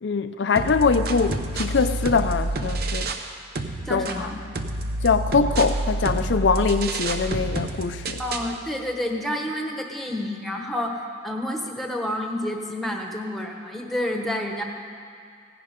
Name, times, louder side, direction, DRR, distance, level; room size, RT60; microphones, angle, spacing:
voice 1, 0.0-3.1 3.9-4.1 5.0-8.2, left 4 dB, 75° left, 9 dB, 0.5 m, -23 dB
sound 1, 0.6-3.3 3.6-8.6, right 2 dB, 55° right, 0.8 m, -28 dB
voice 2, 3.8-4.4 8.2-14.6, left 1 dB, ahead, 2 dB, 1.1 m, -29 dB
17.0 x 10.5 x 5.2 m, 2.2 s
head